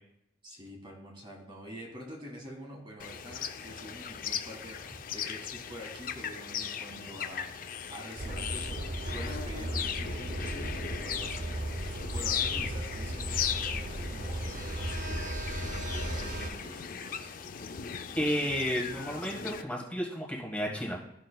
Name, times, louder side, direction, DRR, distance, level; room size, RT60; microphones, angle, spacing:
voice 1, 0.4-11.6 12.1-17.3, equal, 25° right, 0 dB, 1.8 m, -46 dB
sound 1, 3.0-19.6, left 8 dB, 50° left, 0.4 m, -38 dB
sound 2, 8.2-16.5, right 1 dB, 45° right, 0.6 m, -36 dB
voice 2, 18.1-21.0, equal, 5° left, -3 dB, 1.5 m, -32 dB
14.0 x 6.2 x 2.3 m, 0.79 s
head